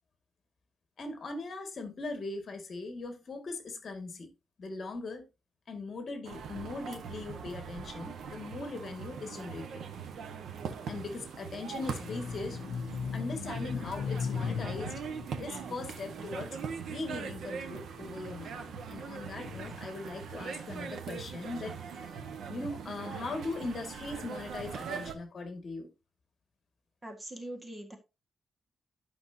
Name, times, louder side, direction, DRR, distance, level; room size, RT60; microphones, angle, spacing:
voice 1, 1.0-4.3 4.6-5.3 5.7-9.8 10.9-12.6 13.1-15.0 15.4-16.6 16.9-18.6 18.9-21.8 22.5-25.9, left 3 dB, 45° left, 2.1 m, -40 dB
sound 1, 6.2-25.1, right 6 dB, 85° right, 1.4 m, -41 dB
sound 2, 11.8-17.3 17.9-19.7, left 6 dB, 85° left, 0.5 m, -38 dB
voice 2, 27.0-28.0, right 1 dB, 20° right, 1.8 m, -42 dB
12.5 x 6.0 x 2.8 m
wide cardioid pair, 140°, 0 cm